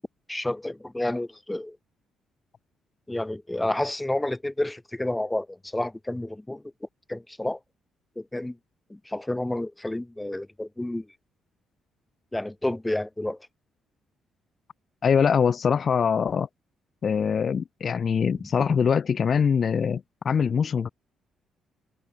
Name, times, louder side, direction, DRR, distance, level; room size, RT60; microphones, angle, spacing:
voice 1, 0.3-1.8 3.1-6.6 7.1-7.6 8.2-8.6 8.9-11.1 12.3-13.4 18.3-18.4, left 1 dB, 10° left, 0.9 m, -30 dB
voice 2, 15.0-16.5 17.0-20.9, left 6 dB, 50° left, 0.6 m, -23 dB
cardioid pair, 90°, 0 cm